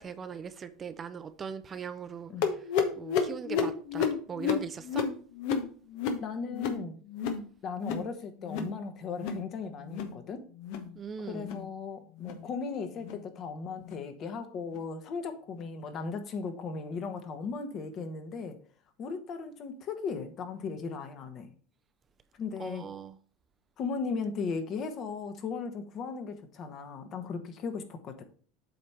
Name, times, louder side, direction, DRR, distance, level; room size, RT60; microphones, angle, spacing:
voice 1, 0.0-2.3 3.0-5.1 11.0-11.5 22.6-23.1, right 6 dB, 30° right, 0.6 m, -40 dB
sound 1, 2.4-7.5 7.7-8.1 8.4-8.8 9.1-9.5 9.8-10.2 10.6-10.9 11.4-11.7 12.2-12.4 13.0-13.2 13.8-14.0 14.7-14.8 15.6-15.7, left 6 dB, 70° left, 1.0 m, -32 dB
voice 2, 6.2-7.0 7.6-10.5 11.2-18.6 19.0-21.5 22.4-22.8 23.8-28.2, left 5 dB, 45° left, 1.2 m, -37 dB
7.8 x 3.3 x 5.7 m
hypercardioid pair, 95°, 0 cm